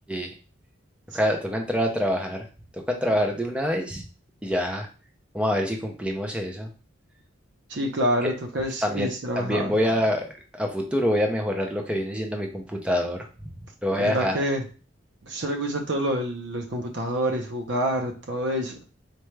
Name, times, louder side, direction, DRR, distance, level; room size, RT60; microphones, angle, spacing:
voice 1, 1.1-2.5 2.7-4.0 4.4-4.9 5.3-6.7 8.2-8.3 8.8-10.3 10.5-13.5 13.8-14.4, equal, 5° right, 2 dB, 0.5 m, -26 dB
voice 2, 7.7-9.7 14.0-14.6 15.2-18.8, equal, 60° right, 4 dB, 0.8 m, -27 dB
4.4 x 2.4 x 3.2 m, 0.35 s
head